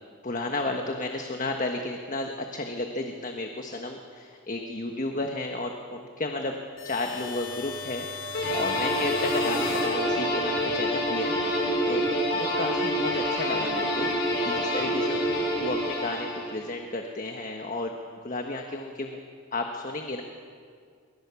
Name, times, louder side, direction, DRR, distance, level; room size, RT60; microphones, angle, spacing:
voice 1, 0.2-6.6 6.8-12.0 12.3-15.3 15.6-17.9 18.2-19.2 19.5-20.2, left 2 dB, 40° left, 3 dB, 1.4 m, -33 dB
sound 1, 6.8-10.7, left 4 dB, 75° left, 2.2 m, -37 dB
sound 2, 8.3-16.7, equal, 55° left, 7.3 m, -27 dB
23.5 x 21.0 x 7.1 m, 2.2 s
head